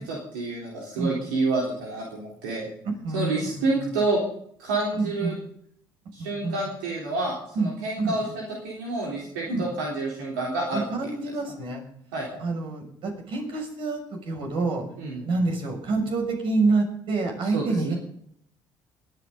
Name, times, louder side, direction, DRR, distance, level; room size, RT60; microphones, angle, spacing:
voice 1, 0.0-2.7 3.1-4.2 4.6-5.3 6.1-10.9 12.1-12.3 15.0-15.3 17.5-17.9, right 2 dB, 85° right, -3 dB, 3.7 m, -28 dB
voice 2, 1.0-1.3 3.0-3.9 4.9-5.4 6.2-6.6 7.5-7.7 8.0-8.2 9.5-9.7 10.7-11.8 12.4-14.8 15.2-18.0, right 3 dB, 60° right, 2 dB, 6.7 m, -27 dB
21.0 x 11.5 x 4.0 m, 0.66 s
hypercardioid pair, 60°, 10 cm